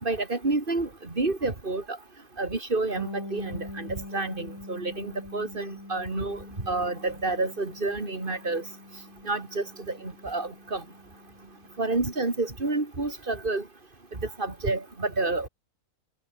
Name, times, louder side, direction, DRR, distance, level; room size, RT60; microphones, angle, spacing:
voice 1, 0.0-2.0 2.4-6.4 6.6-8.6 9.2-10.8 11.8-13.6 14.2-15.5, right 3 dB, 35° right, 3.4 m, -29 dB
Bass guitar, 3.0-12.6, left 1 dB, 55° left, 8.3 m, -44 dB
omnidirectional pair, 1.6 m